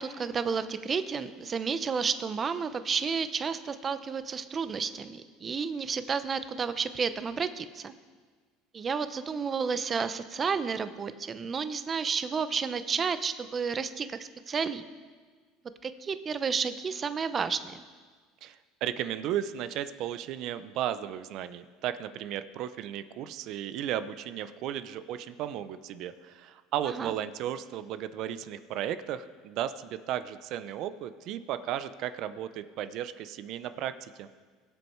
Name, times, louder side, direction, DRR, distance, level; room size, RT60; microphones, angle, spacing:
voice 1, 0.0-7.9 8.7-14.9 15.8-17.8 26.8-27.1, right 5 dB, 30° right, 12 dB, 0.9 m, -31 dB
voice 2, 18.4-34.3, right 11 dB, 60° right, 12 dB, 0.8 m, -35 dB
23.0 x 8.2 x 4.6 m, 1.5 s
supercardioid pair, 100°, 0 cm